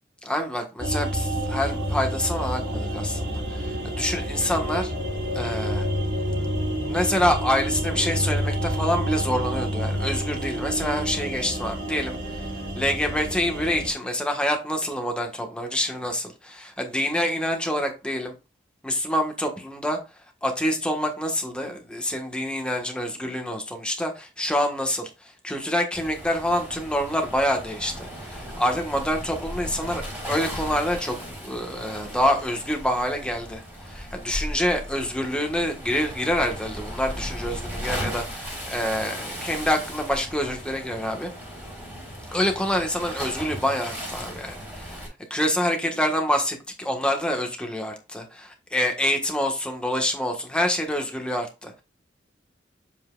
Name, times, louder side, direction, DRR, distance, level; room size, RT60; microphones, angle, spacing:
voice 1, 0.2-4.9 5.3-5.9 6.8-12.5 12.7-18.3 18.8-20.0 20.4-25.1 25.4-31.2 31.4-41.3 42.3-45.0 45.3-51.8, left 1 dB, 5° left, 1.4 m, -26 dB
sound 1, 0.8-13.9, equal, 80° right, 3.8 m, -28 dB
Waves surf, 25.9-45.1, equal, 10° right, 3.8 m, -36 dB
7.3 x 5.4 x 2.4 m
head